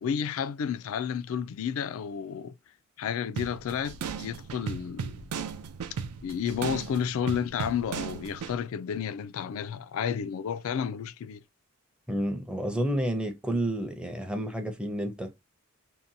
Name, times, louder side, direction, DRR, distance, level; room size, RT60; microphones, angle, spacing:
voice 1, 0.0-2.5 3.0-5.2 6.2-11.4, left 7 dB, 65° left, 0.3 m, -31 dB
sound 1, 3.4-8.6, right 6 dB, 85° right, 0.4 m, -36 dB
voice 2, 12.1-15.4, right 1 dB, 5° right, 0.5 m, -30 dB
2.7 x 2.2 x 2.6 m
head